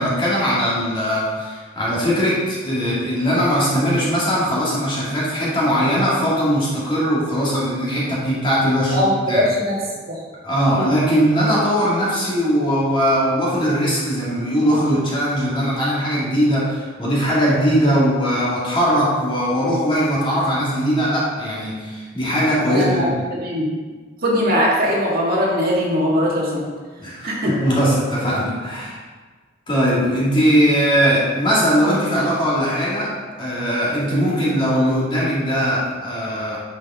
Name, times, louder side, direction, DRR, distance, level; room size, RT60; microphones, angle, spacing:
voice 1, 0.0-9.5 10.4-23.1 27.0-29.0 29.7-36.6, equal, 25° left, -7 dB, 2.3 m, -20 dB
voice 2, 8.9-9.8 10.1-10.2 10.8-11.0 22.7-23.1 23.4-23.8 24.2-26.6 27.2-27.6, equal, 50° right, -5 dB, 2.0 m, -20 dB
10.0 x 5.6 x 3.7 m, 1.4 s
head